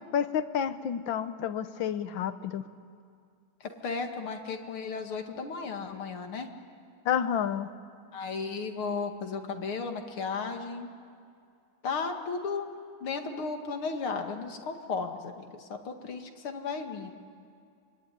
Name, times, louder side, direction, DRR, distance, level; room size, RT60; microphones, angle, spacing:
voice 1, 0.1-2.6 7.1-7.7, left 8 dB, 70° left, 12 dB, 1.7 m, -29 dB
voice 2, 3.6-6.5 8.1-10.9 11.8-12.7 13.0-17.1, left 4 dB, 90° left, 5 dB, 2.9 m, -34 dB
25.0 x 23.5 x 9.9 m, 2.3 s
omnidirectional pair, 2.3 m